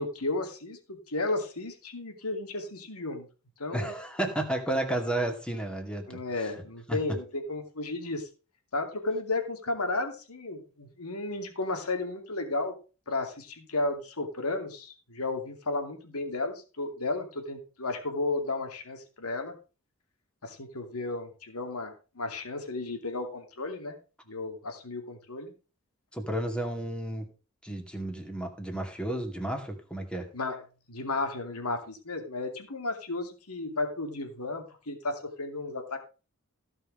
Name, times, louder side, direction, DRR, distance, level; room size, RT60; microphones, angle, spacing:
voice 1, 0.0-3.3 3.6-3.9 6.1-8.3 8.7-12.7 13.1-19.5 20.4-24.0 24.3-25.5 30.3-30.6 30.9-36.0, left 2 dB, 90° left, 5 dB, 2.6 m, -33 dB
voice 2, 3.7-6.5 6.9-7.0 26.1-27.3 27.6-30.3, right 1 dB, 5° left, 4 dB, 2.3 m, -32 dB
16.0 x 5.6 x 5.0 m, 0.34 s
head